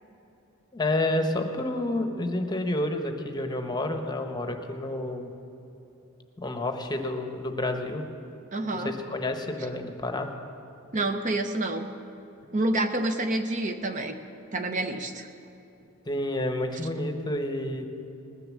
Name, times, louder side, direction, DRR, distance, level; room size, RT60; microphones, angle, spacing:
voice 1, 0.7-5.3 6.4-8.0 8.7-10.3 16.1-17.8, left 1 dB, 20° left, 5 dB, 0.9 m, -29 dB
voice 2, 8.5-8.9 10.9-11.9 12.5-14.1 14.5-15.3, right 2 dB, 35° right, 7 dB, 0.7 m, -28 dB
19.5 x 6.8 x 7.4 m, 2.9 s
head